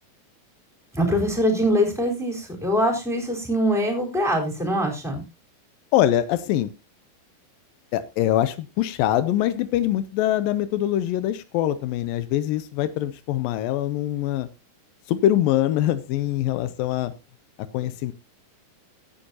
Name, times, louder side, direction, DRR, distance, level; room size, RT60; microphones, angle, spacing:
voice 1, 0.9-5.2, equal, ahead, 0 dB, 3.8 m, -23 dB
voice 2, 5.9-6.7 7.9-14.5 15.1-17.1 17.7-18.1, left 12 dB, 90° left, 13 dB, 2.5 m, -23 dB
16.5 x 10.0 x 2.9 m, 0.27 s
omnidirectional pair, 3.9 m